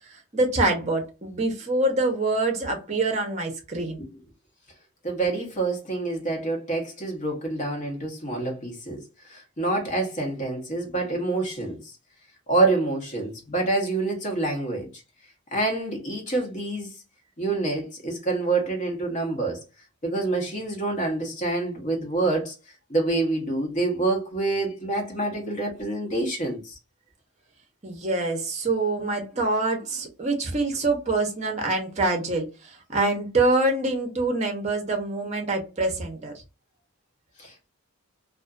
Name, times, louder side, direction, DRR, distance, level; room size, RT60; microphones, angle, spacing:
voice 1, 0.0-4.1 27.8-36.3, right 2 dB, 30° right, 0.7 m, -25 dB
voice 2, 5.0-11.9 12.5-14.9 15.5-16.9 17.4-19.6 20.0-22.5 22.9-26.8 37.4-37.7, right 2 dB, 35° left, 0.8 m, -27 dB
2.5 x 2.4 x 2.3 m
head